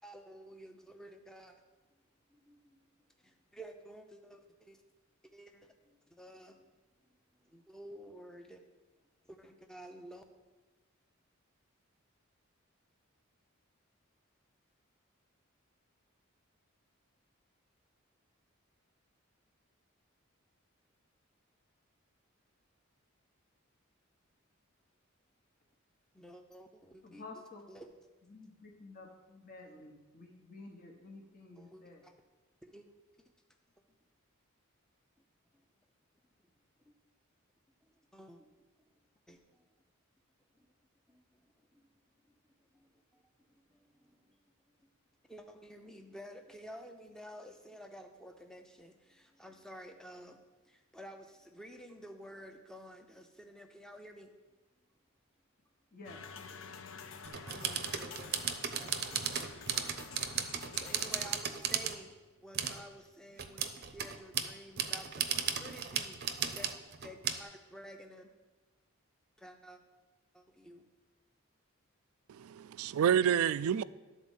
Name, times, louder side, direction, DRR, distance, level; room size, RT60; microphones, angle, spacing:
voice 1, 0.0-1.6 2.3-2.8 3.2-4.8 5.2-6.7 7.4-8.6 9.3-10.2 26.1-27.9 31.6-32.1 32.6-33.3 36.9-37.0 38.1-38.5 39.3-39.6 40.5-40.7 41.1-42.0 42.4-43.2 43.5-44.4 44.8-44.9 45.3-54.3 57.4-58.4 58.8-59.0 59.3-60.0 60.2-68.3 69.4-69.8 70.3-70.9, equal, 5° left, 5 dB, 0.6 m, -52 dB
voice 2, 27.0-27.7 28.2-32.0 55.9-56.2, left 3 dB, 40° left, 0 dB, 1.1 m, -51 dB
sound 1, 56.0-61.3, left 5 dB, 65° left, 0.6 m, -49 dB
sound 2, 57.2-62.0 62.5-62.8 63.4-67.4, right 8 dB, 50° right, 0.6 m, -35 dB
voice 3, 72.3-73.8, right 8 dB, 90° right, 18 dB, 0.3 m, -28 dB
12.0 x 4.2 x 7.2 m, 1.2 s
head